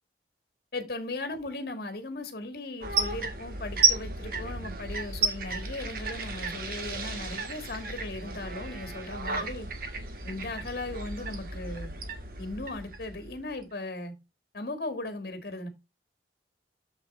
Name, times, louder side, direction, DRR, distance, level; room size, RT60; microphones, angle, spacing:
voice 1, 0.7-9.7 10.2-11.9 12.4-14.1 14.5-15.7, left 2 dB, 55° left, 1.6 m, -37 dB
sound 1, 2.8-13.6, right 4 dB, 55° right, 1.5 m, -32 dB
7.4 x 4.2 x 4.0 m
head